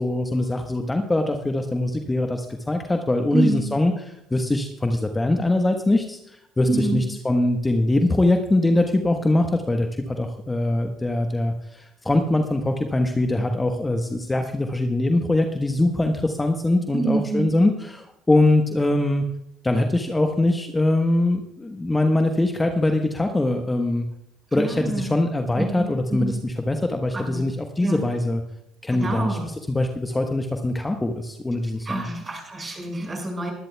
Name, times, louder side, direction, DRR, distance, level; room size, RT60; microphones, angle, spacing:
voice 1, 0.0-19.3 19.6-24.1 24.5-28.4 28.8-32.1, left 2 dB, 15° left, 4 dB, 1.2 m, -22 dB
voice 2, 3.3-3.7 6.7-7.1 16.9-17.5 24.6-25.2 25.6-26.4 27.1-27.4 27.8-28.0 28.9-29.5 31.8-33.5, right 3 dB, 30° right, 1 dB, 5.9 m, -27 dB
22.5 x 12.0 x 2.3 m, 0.80 s
hypercardioid pair, 65°, 0 cm